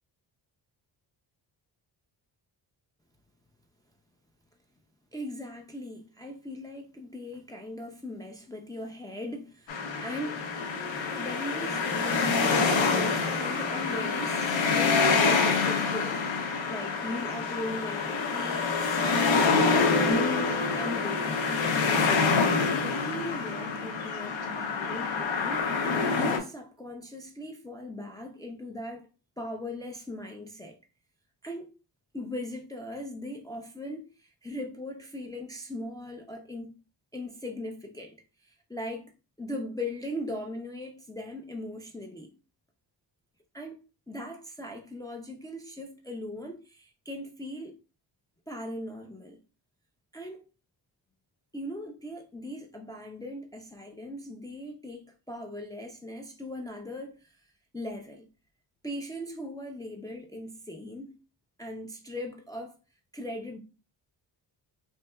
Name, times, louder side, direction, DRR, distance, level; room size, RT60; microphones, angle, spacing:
voice 1, 5.1-10.7 11.2-19.6 20.0-21.4 21.9-22.2 22.7-25.6 26.1-29.1 29.4-30.8 31.4-31.7 32.1-36.8 37.1-38.2 38.4-39.1 39.4-42.3 43.5-43.8 44.1-47.7 48.5-49.4 50.1-50.5 51.5-57.4 57.7-58.3 58.8-61.2 61.6-62.8 63.1-63.6, left 1 dB, 10° left, 0.4 m, -39 dB
sound 1, 9.7-26.4, left 4 dB, 85° left, 0.8 m, -26 dB
4.2 x 2.7 x 2.2 m
cardioid pair, 90°, 45 cm